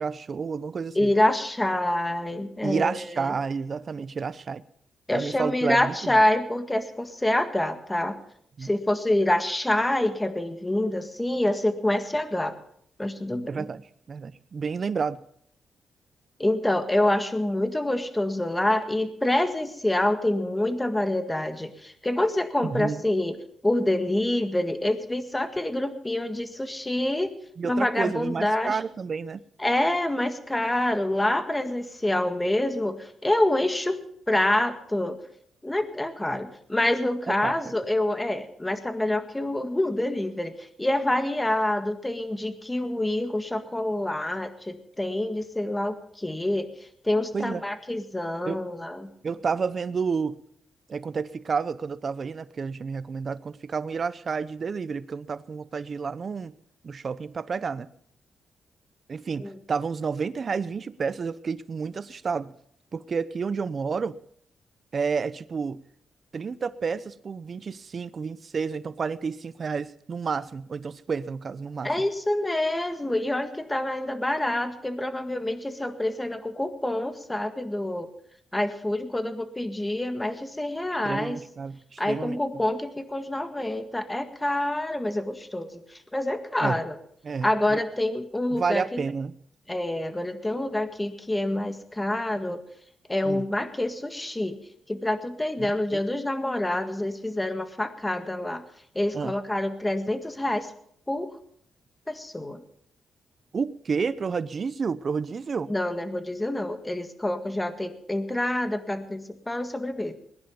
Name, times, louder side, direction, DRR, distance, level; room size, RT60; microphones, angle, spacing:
voice 1, 0.0-1.1 2.6-4.6 5.1-6.2 8.6-8.7 13.5-13.8 14.1-15.2 22.6-23.0 27.6-29.4 37.3-37.6 47.3-47.6 48.5-48.6 49.2-50.4 50.9-56.5 56.8-57.9 59.1-62.5 62.9-64.2 64.9-65.8 66.3-71.9 81.0-82.4 86.6-86.8 87.2-87.8 88.5-89.3 93.2-93.4 95.6-96.0 99.1-99.4 103.5-105.7, right 5 dB, 45° right, 16 dB, 0.7 m, -30 dB
voice 2, 1.0-3.3 5.1-8.2 8.6-12.5 13.0-13.7 16.4-23.4 23.6-27.3 27.6-28.8 29.6-34.0 34.3-35.2 35.6-46.7 47.0-49.1 59.4-59.5 71.8-78.1 78.5-81.4 82.0-87.0 87.4-89.0 89.7-92.6 93.1-94.6 94.9-98.6 99.0-100.7 101.1-101.3 102.1-102.6 105.7-110.1, left 1 dB, 15° left, 8 dB, 1.8 m, -27 dB
20.5 x 10.5 x 5.4 m, 0.67 s
cardioid pair, 90°, 0 cm